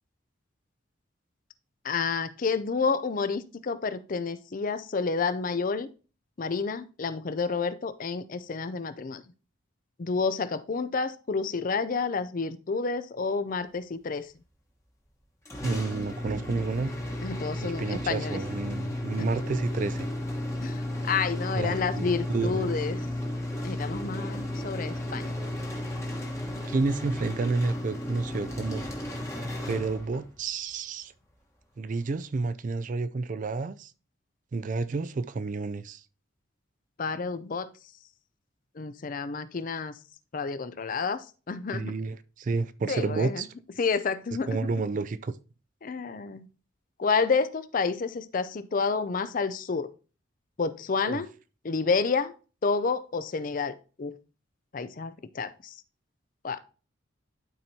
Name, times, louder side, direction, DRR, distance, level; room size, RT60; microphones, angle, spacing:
voice 1, 1.8-5.9 6.4-9.2 10.0-14.3 17.2-18.4 19.2-19.3 20.6-23.0 23.6-25.3 37.0-37.7 38.8-39.9 40.3-41.9 42.9-43.4 43.8-44.7 45.8-46.5 47.0-49.9 50.6-51.3 51.6-52.3 52.6-54.1 54.7-55.7 56.4-56.6, left 4 dB, 45° left, 0.4 m, -29 dB
sound 1, 15.5-30.4, left 1 dB, 15° left, 1.2 m, -34 dB
voice 2, 15.6-16.9 17.6-20.1 21.5-22.7 26.7-28.8 29.7-31.1 31.8-33.9 34.5-36.0 41.7-43.5 44.5-45.3 51.1-51.2, right 3 dB, 40° right, 0.3 m, -30 dB
11.5 x 4.4 x 2.8 m
head